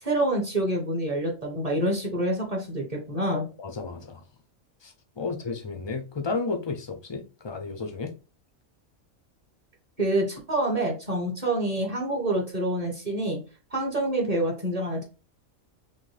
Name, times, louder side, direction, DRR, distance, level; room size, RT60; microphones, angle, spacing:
voice 1, 0.0-3.5 10.0-13.4 13.7-15.0, right 1 dB, 30° right, 1.2 m, -27 dB
voice 2, 3.3-4.2 4.8-8.1, left 4 dB, 35° left, 0.4 m, -33 dB
5.8 x 2.2 x 3.3 m
omnidirectional pair, 1.3 m